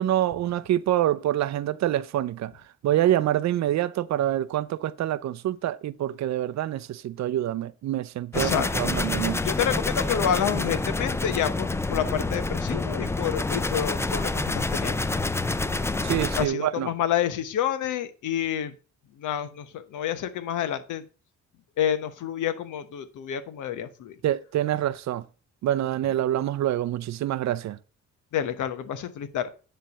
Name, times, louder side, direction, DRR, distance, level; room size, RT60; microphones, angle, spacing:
voice 1, 0.0-9.5 16.0-16.9 24.2-25.2 25.6-27.8, right 12 dB, 65° right, 0.6 m, -26 dB
voice 2, 8.3-8.9 9.4-15.2 16.3-18.8 19.2-21.0 21.8-24.1 28.3-29.5, left 9 dB, 80° left, 1.1 m, -29 dB
sound 1, 8.3-16.5, left 2 dB, 10° left, 0.4 m, -27 dB
10.0 x 3.4 x 6.7 m
cardioid pair, 90°, 30 cm